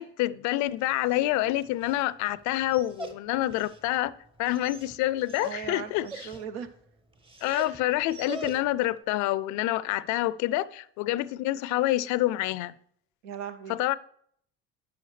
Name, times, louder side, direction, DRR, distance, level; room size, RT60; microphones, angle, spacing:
voice 1, 0.0-4.1 4.4-6.1 7.4-12.7 13.7-13.9, left 16 dB, 70° left, 0.5 m, -27 dB
Dog, 0.7-9.0, right 3 dB, 20° right, 0.9 m, -45 dB
voice 2, 5.4-6.7 7.4-7.8 13.2-13.8, right 8 dB, 85° right, 0.8 m, -38 dB
8.9 x 7.1 x 3.2 m
supercardioid pair, 80°, 30 cm